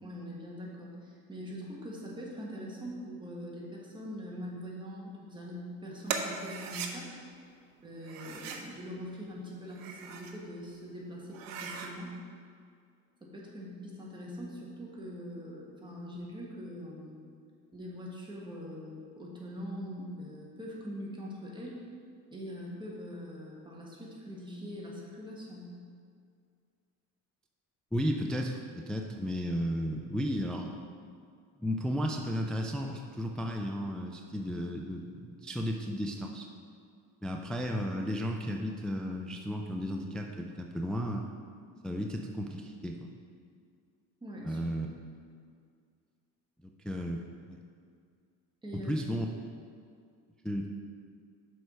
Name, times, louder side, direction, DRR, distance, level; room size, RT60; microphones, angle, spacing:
voice 1, 0.0-7.1 7.8-12.1 13.2-17.2 17.7-21.8 22.3-25.7 44.2-44.6 48.6-48.9, equal, 15° right, -4 dB, 1.5 m, -42 dB
sound 1, 6.1-6.9 8.0-8.7 9.6-10.4 10.8-10.9 11.3-11.9, right 6 dB, 70° right, 0.8 m, -38 dB
voice 2, 27.9-30.8 31.6-36.5 37.2-41.2 41.8-43.0 44.4-44.9 46.8-47.2 47.5-47.6 48.9-49.3 50.4-50.7, equal, ahead, 2 dB, 0.3 m, -34 dB
6.2 x 4.7 x 5.3 m, 2.2 s
cardioid pair, 110°, 35 cm